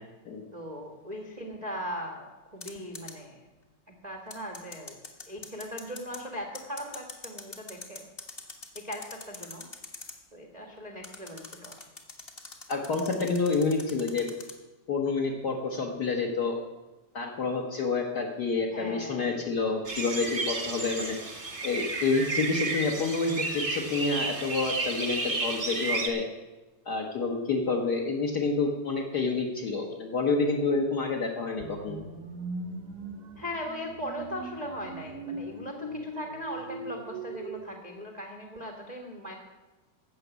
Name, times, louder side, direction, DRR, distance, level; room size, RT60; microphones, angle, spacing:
voice 1, 0.5-3.4 4.0-5.0 5.3-8.0 8.7-9.6 10.3-11.8 18.7-19.4 33.4-39.3, equal, 85° right, 0 dB, 0.3 m, -39 dB
sound 1, 2.6-3.1 4.3-6.2 6.5-10.1 11.0-14.5, left 3 dB, 55° left, 0.6 m, -43 dB
voice 2, 12.7-14.3 14.9-16.6 17.1-21.2 21.6-26.2 26.8-32.0, left 4 dB, 80° left, -1 dB, 0.9 m, -28 dB
sound 2, 19.8-26.1, right 3 dB, 35° right, 0.8 m, -32 dB
sound 3, 31.6-37.6, right 2 dB, 65° right, 0.9 m, -40 dB
15.0 x 6.1 x 8.1 m, 1.1 s
omnidirectional pair, 3.6 m